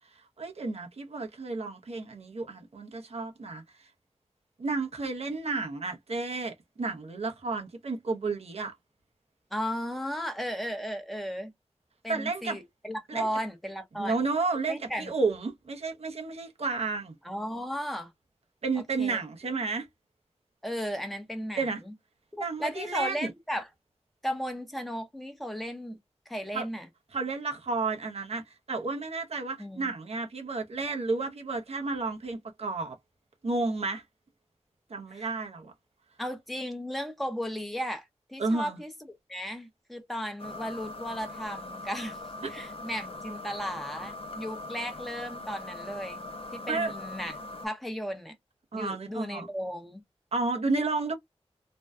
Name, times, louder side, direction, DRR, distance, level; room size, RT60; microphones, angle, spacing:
voice 1, 0.4-3.6 4.6-8.7 12.1-12.6 13.1-13.3 14.0-17.1 18.6-19.9 21.6-21.8 22.4-23.3 26.5-26.7 27.1-33.0 33.4-34.0 34.9-35.7 38.4-38.8 46.7-46.9 48.7-49.5 50.3-51.1, right 3 dB, 65° right, 0.7 m, -31 dB
voice 2, 9.5-11.5 12.0-14.2 14.7-15.1 17.2-18.1 19.0-19.2 20.6-21.9 22.3-23.7 24.2-26.0 26.3-26.9 29.6-29.9 35.1-35.3 36.2-42.2 42.5-47.4 47.6-48.3 48.7-50.0, equal, ahead, 0.7 m, -35 dB
sound 1, 40.4-47.7, left 2 dB, 55° left, 0.5 m, -41 dB
2.6 x 2.2 x 2.2 m
wide cardioid pair, 70°, 11 cm